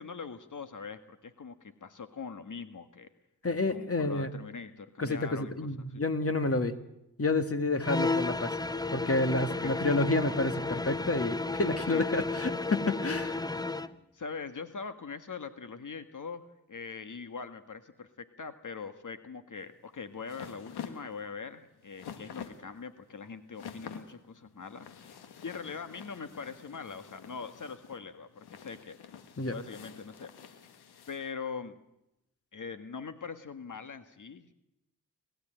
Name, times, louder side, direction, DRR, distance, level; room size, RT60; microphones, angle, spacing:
voice 1, 0.0-3.1 3.7-6.0 9.6-9.8 11.9-12.0 14.1-29.0 29.5-30.6 31.1-31.8 32.5-34.5, left 5 dB, 55° left, 10 dB, 1.8 m, -42 dB
voice 2, 3.4-4.3 5.0-6.8 7.2-8.6 8.9-13.4 29.4-29.5, left 2 dB, 40° left, 9 dB, 2.0 m, -29 dB
sound 1, 7.8-14.0, left 3 dB, 10° left, 0.9 m, -33 dB
sound 2, 19.6-31.3, left 7 dB, 90° left, 1.7 m, -48 dB
28.0 x 13.5 x 9.1 m, 0.88 s
supercardioid pair, 40°, 37 cm